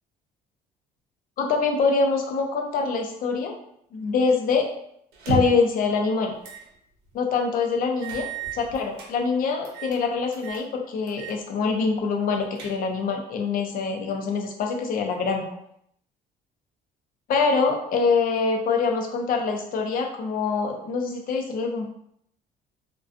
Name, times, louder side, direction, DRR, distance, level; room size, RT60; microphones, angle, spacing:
voice 1, 1.4-3.5 3.9-4.6 5.3-6.3 7.1-8.3 8.5-15.5 17.3-21.9, left 4 dB, 55° left, 2 dB, 0.5 m, -24 dB
sound 1, 5.1-5.7 6.4-6.7 7.1-7.2 8.0-9.1 9.6-10.0 10.3-10.7 11.1-11.4 11.7-11.8 12.3-13.1, right 5 dB, 90° right, 0.7 m, -33 dB
2.4 x 2.2 x 2.4 m, 0.71 s
cardioid pair, 110°, 17 cm